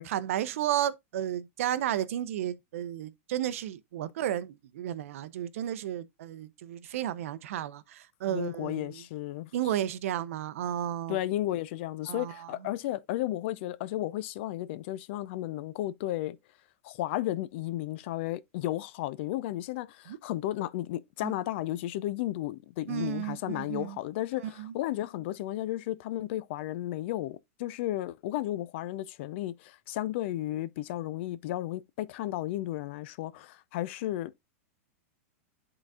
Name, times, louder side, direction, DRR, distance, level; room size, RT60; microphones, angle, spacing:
voice 1, 0.1-9.0 9.5-11.2 12.1-12.5 20.1-20.2 21.2-21.3 22.9-24.0 24.4-24.7, right 11 dB, 70° right, 0.6 m, -33 dB
voice 2, 8.3-9.5 11.1-16.4 16.8-34.5, left 14 dB, 50° left, 0.5 m, -33 dB
10.5 x 3.9 x 2.4 m
supercardioid pair, 150°, 8 cm